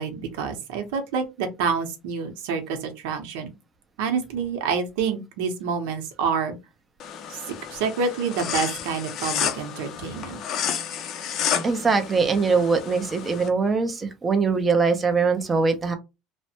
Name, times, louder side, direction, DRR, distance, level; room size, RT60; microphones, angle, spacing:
voice 1, 0.0-3.5 4.0-6.6 7.3-7.4 7.7-10.4 11.8-11.9, right 5 dB, 80° right, 0.8 m, -28 dB
sound 1, 7.0-13.5, left 8 dB, 40° left, 0.5 m, -31 dB
voice 2, 11.6-15.9, right 4 dB, 15° right, 0.5 m, -22 dB
3.1 x 2.1 x 2.8 m
cardioid pair, 165°, 0 cm